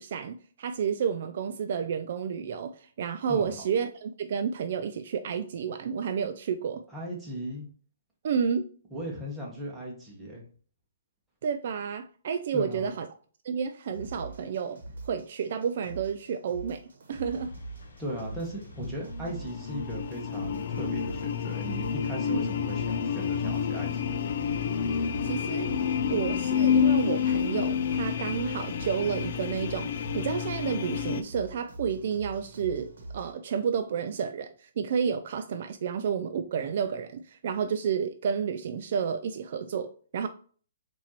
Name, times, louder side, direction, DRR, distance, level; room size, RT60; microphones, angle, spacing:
voice 1, 0.0-6.8 8.2-8.7 11.4-13.1 13.4-14.8 15.1-16.8 17.1-17.5 22.3-22.4 25.2-25.7 26.1-40.3, right 7 dB, 55° right, 0.3 m, -31 dB
voice 2, 6.9-7.7 8.9-10.4 12.5-12.9 18.0-24.2, equal, 5° right, 1.1 m, -37 dB
sound 1, 13.9-33.3, right 2 dB, 70° right, 1.0 m, -44 dB
sound 2, 17.1-30.4, left 2 dB, 75° left, 0.9 m, -48 dB
sound 3, 19.0-31.2, left 8 dB, 55° left, 0.3 m, -29 dB
4.2 x 2.6 x 2.9 m
hypercardioid pair, 155°, 0 cm